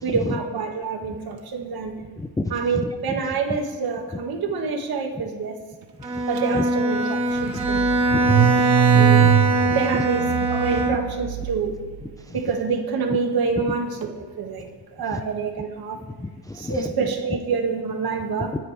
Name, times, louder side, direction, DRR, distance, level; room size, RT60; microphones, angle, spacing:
voice 1, 0.0-2.0 2.5-5.6 6.3-8.0 8.8-11.8 12.3-16.0 16.5-18.6, right 5 dB, 55° right, 3 dB, 2.1 m, -27 dB
voice 2, 2.2-2.5 8.1-8.5 8.9-9.4 15.1-15.2 16.2-16.9, left 2 dB, 10° left, 6 dB, 0.5 m, -30 dB
Bowed string instrument, 6.0-11.3, right 2 dB, 10° right, 1.9 m, -22 dB
Car / Engine starting, 6.4-6.5 6.8-12.0, right 12 dB, 80° right, 1.1 m, -23 dB
27.0 x 9.3 x 3.5 m, 1.4 s
cardioid pair, 120°, 45 cm